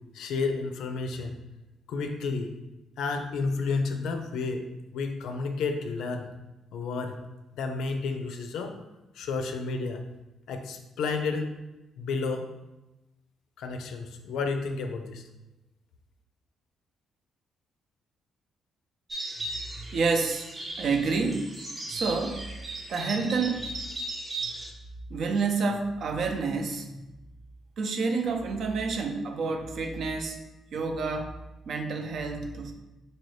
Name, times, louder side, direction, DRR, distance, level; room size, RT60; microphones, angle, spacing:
voice 1, 0.1-1.3 1.9-2.5 3.0-4.7 4.9-6.3 6.7-7.2 7.5-8.7 9.1-10.0 10.5-11.5 12.0-12.5 13.6-15.2, left 4 dB, 80° left, 6 dB, 0.4 m, -31 dB
sound 1, 19.1-24.7, right 1 dB, 25° right, 0.7 m, -37 dB
voice 2, 19.9-20.5 20.8-21.5 21.9-22.4 22.9-23.7 25.1-26.9 27.8-30.4 30.7-31.3 31.7-32.7, right 4 dB, 65° right, 4 dB, 0.6 m, -28 dB
4.0 x 2.7 x 3.2 m, 1.0 s
cardioid pair, 90°, 0 cm